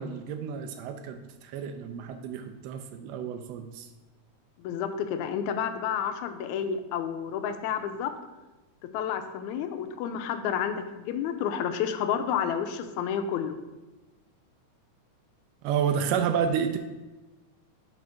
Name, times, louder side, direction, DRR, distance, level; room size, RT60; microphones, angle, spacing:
voice 1, 0.0-3.9 15.6-16.8, right 7 dB, 85° right, 7 dB, 1.4 m, -30 dB
voice 2, 4.6-8.1 8.9-13.5, left 8 dB, 80° left, 7 dB, 2.0 m, -30 dB
5.8 x 4.3 x 5.6 m, 1.1 s
omnidirectional pair, 3.4 m